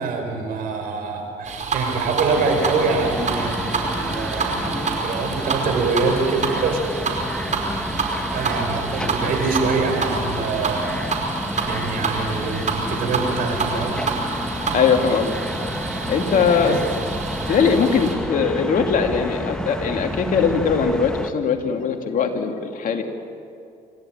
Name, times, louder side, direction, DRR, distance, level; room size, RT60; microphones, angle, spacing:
voice 1, 0.0-6.8 8.3-11.0 11.6-13.9 16.6-16.8, right 4 dB, 65° right, 4 dB, 4.9 m, -25 dB
sound 1, 1.4-18.2, right 4 dB, 50° right, 5.1 m, -28 dB
sound 2, 2.3-21.3, equal, 5° left, 1.6 m, -30 dB
voice 2, 14.7-15.4 16.1-16.9 17.5-23.0, left 6 dB, 55° left, 4 dB, 2.5 m, -20 dB
27.0 x 14.0 x 8.9 m, 2.5 s
supercardioid pair, 60°, 16 cm